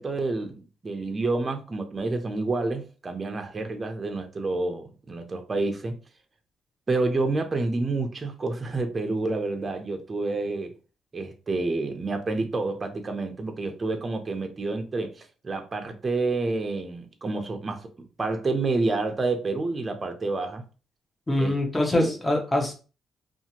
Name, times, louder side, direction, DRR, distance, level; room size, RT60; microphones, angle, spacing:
voice 1, 0.0-6.0 6.9-10.7 11.1-17.9 18.2-20.6 21.4-21.6 21.9-22.1, right 3 dB, 30° right, 0.6 m, -29 dB
voice 2, 21.3-22.7, left 1 dB, 15° left, 0.9 m, -24 dB
2.7 x 2.4 x 2.8 m
cardioid pair, 90°, 0 cm